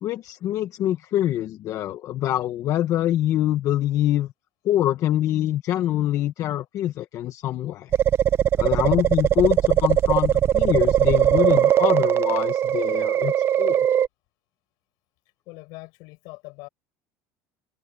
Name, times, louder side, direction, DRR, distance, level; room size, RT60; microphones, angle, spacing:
voice 1, 0.0-4.3 4.6-7.9 8.6-13.9, left 12 dB, 45° left, 0.8 m, -25 dB
sound 1, 7.9-14.1, right 11 dB, 35° right, 0.6 m, -20 dB
voice 2, 15.5-16.7, left 25 dB, 70° left, 6.2 m, -42 dB
open air
cardioid pair, 145°, 7 cm